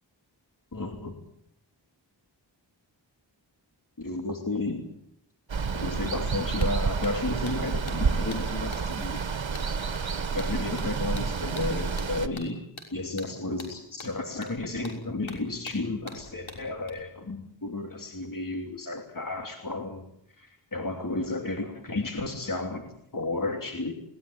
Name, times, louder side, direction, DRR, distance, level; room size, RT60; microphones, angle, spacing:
voice 1, 0.7-1.1 4.0-4.9 5.8-9.3 10.3-12.6 12.9-20.0 20.4-23.9, left 2 dB, 45° left, 4 dB, 2.9 m, -32 dB
Water, 5.5-12.3, right 5 dB, 85° right, 1.5 m, -29 dB
sound 1, 6.6-16.9, left 2 dB, 85° left, 5.9 m, -46 dB
21.5 x 19.5 x 9.0 m, 0.72 s
wide cardioid pair, 60°, 45 cm